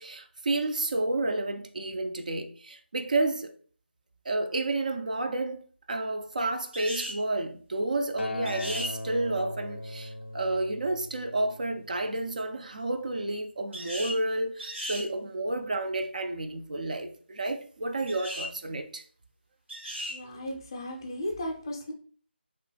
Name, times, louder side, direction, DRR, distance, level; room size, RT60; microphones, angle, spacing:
voice 1, 0.0-3.5 4.3-19.0, right 2 dB, 40° right, 0.4 m, -31 dB
sound 1, 6.7-7.2 8.5-8.9 13.7-14.2 14.6-15.1 18.1-18.5 19.7-20.2, equal, 85° right, 1.4 m, -36 dB
Acoustic guitar, 8.2-12.5 13.3-13.4, left 2 dB, 85° left, 0.4 m, -39 dB
voice 2, 20.1-21.9, left 1 dB, 25° left, 0.5 m, -35 dB
2.9 x 2.1 x 3.2 m
figure-of-eight pair, 160°, 6 cm